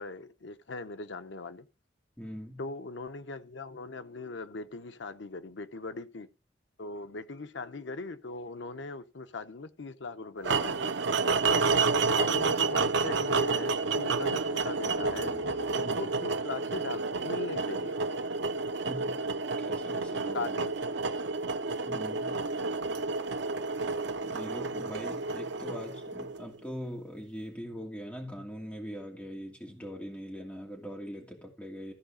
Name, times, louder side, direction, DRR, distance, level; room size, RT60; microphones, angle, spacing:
voice 1, 0.0-1.7 2.6-6.3 6.8-10.9 11.5-11.8 12.2-15.4 15.7-18.0 20.3-20.7, left 3 dB, 80° left, 0.8 m, -40 dB
voice 2, 2.2-2.6 15.8-16.0 18.8-19.2 19.6-20.6 21.8-22.4 24.2-31.9, equal, 5° left, 2.6 m, -42 dB
sound 1, 10.4-26.6, right 4 dB, 75° right, 0.6 m, -30 dB
sound 2, 15.0-18.1, left 1 dB, 60° left, 3.1 m, -49 dB
14.5 x 4.9 x 5.1 m
head